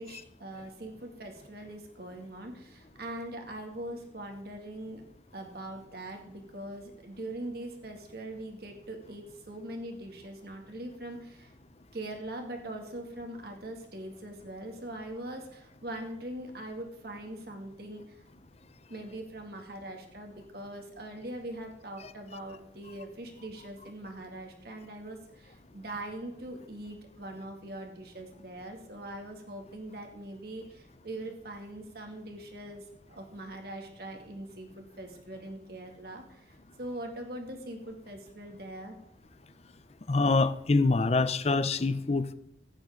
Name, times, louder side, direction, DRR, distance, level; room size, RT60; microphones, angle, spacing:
voice 1, 0.0-5.0 5.3-11.5 11.9-18.2 18.9-39.0, right 1 dB, 55° right, 3 dB, 2.3 m, -42 dB
voice 2, 40.1-42.3, left 3 dB, 35° left, 14 dB, 0.5 m, -25 dB
15.0 x 9.6 x 3.8 m, 0.79 s
head